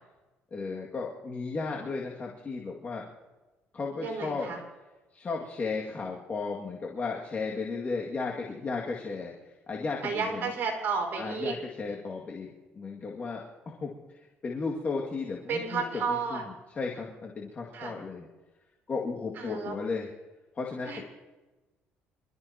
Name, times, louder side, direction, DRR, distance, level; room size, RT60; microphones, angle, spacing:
voice 1, 0.5-3.1 3.7-4.5 5.1-10.5 11.2-18.3 18.9-20.1 20.5-21.0, left 4 dB, 35° left, -2 dB, 2.2 m, -35 dB
voice 2, 4.0-4.6 10.0-11.6 15.5-16.4 17.7-17.9 19.4-19.7 20.8-21.0, right 5 dB, 50° right, 0 dB, 5.3 m, -32 dB
26.0 x 13.5 x 2.9 m, 1.2 s
cardioid pair, 110°, 4 cm